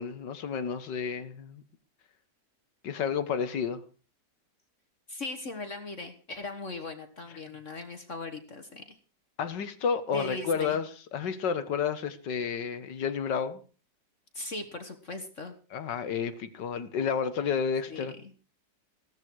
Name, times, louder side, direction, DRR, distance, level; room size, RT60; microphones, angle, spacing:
voice 1, 0.0-1.6 2.8-3.8 9.4-13.6 15.7-18.1, left 6 dB, 85° left, 1.9 m, -31 dB
voice 2, 5.1-9.0 10.1-10.8 14.3-15.5 17.9-18.3, left 2 dB, 45° left, 1.8 m, -39 dB
15.5 x 13.5 x 4.7 m
omnidirectional pair, 1.8 m